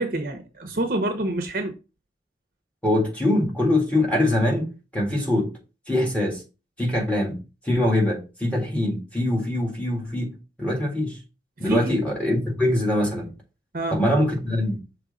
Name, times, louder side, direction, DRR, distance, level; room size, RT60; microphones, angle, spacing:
voice 1, 0.0-1.7 11.7-12.0 13.7-14.0, right 1 dB, 50° right, 0.9 m, -27 dB
voice 2, 2.8-5.5 5.9-6.4 6.8-7.4 7.6-11.2 11.6-13.3 13.9-14.8, left 1 dB, 10° left, 1.8 m, -23 dB
6.1 x 3.2 x 5.2 m
head